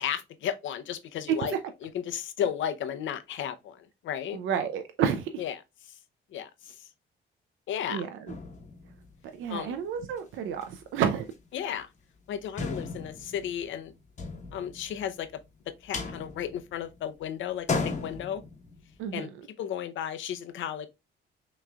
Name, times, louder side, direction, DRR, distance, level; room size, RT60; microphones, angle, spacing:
voice 1, 0.0-4.4 5.4-5.6 6.3-6.9 7.7-8.0 9.5-9.8 11.5-11.9 12.3-13.9 14.5-15.4 15.8-18.4 19.1-19.3 19.6-20.9, left 9 dB, 75° left, 0.7 m, -34 dB
voice 2, 4.3-5.3 7.9-8.1 9.4-11.3 19.0-19.3, right 8 dB, 80° right, 0.6 m, -30 dB
sound 1, 8.3-9.6 10.1-10.2 10.5-10.7 11.0-11.5 11.8-11.9 12.6-15.3 15.7-17.1 17.4-19.1, left 4 dB, 35° left, 1.1 m, -36 dB
5.8 x 3.1 x 2.3 m
cardioid pair, 90°, 20 cm